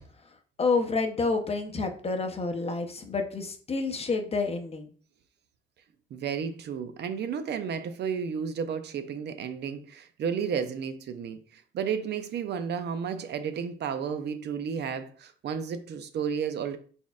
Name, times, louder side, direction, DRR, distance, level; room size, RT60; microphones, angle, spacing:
voice 1, 0.6-4.9, left 4 dB, 30° left, 0.7 m, -29 dB
voice 2, 6.1-16.8, right 7 dB, 60° right, 0.5 m, -32 dB
4.2 x 3.5 x 2.3 m
cardioid pair, 90°, 20 cm